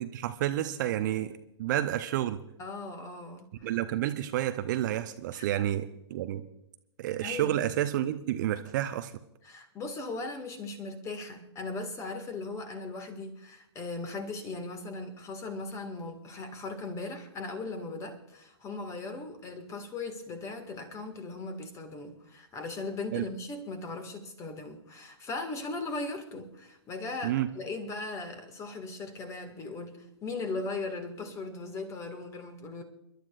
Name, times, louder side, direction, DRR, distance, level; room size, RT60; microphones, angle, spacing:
voice 1, 0.0-2.4 3.6-6.4 7.0-9.1 23.1-23.2 27.2-27.5, right 12 dB, 40° right, 0.7 m, -30 dB
voice 2, 2.6-3.7 5.3-5.6 7.2-7.5 9.4-32.8, left 3 dB, 20° left, 1.9 m, -38 dB
29.5 x 12.0 x 2.5 m
figure-of-eight pair, 115°, 15 cm